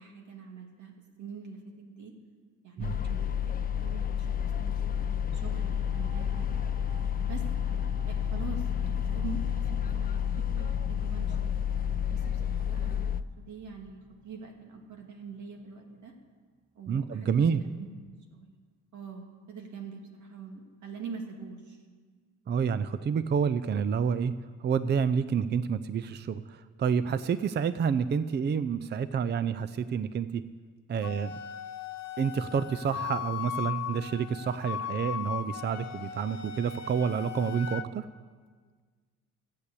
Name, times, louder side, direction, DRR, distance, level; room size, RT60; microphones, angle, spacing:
voice 1, 0.0-2.1 2.6-3.2 3.5-6.5 7.2-7.4 8.1-11.5 12.1-13.0 13.4-16.1 16.7-17.9 18.3-18.6 18.9-21.8, right 5 dB, 75° right, 1 dB, 2.5 m, -44 dB
sound 1, 2.8-13.2, left 8 dB, 30° left, 0.5 m, -30 dB
sound 2, 4.9-16.3, right 2 dB, 10° right, 1.9 m, -53 dB
voice 2, 16.9-17.6 22.5-24.3 24.6-30.4 30.9-31.4 32.2-38.1, right 6 dB, 35° right, 13 dB, 0.5 m, -29 dB
Wind instrument woodwind instrument, 31.0-37.9, left 10 dB, 65° left, 0.9 m, -38 dB
12.5 x 8.3 x 8.4 m, 1.5 s
cardioid pair, 90°, 30 cm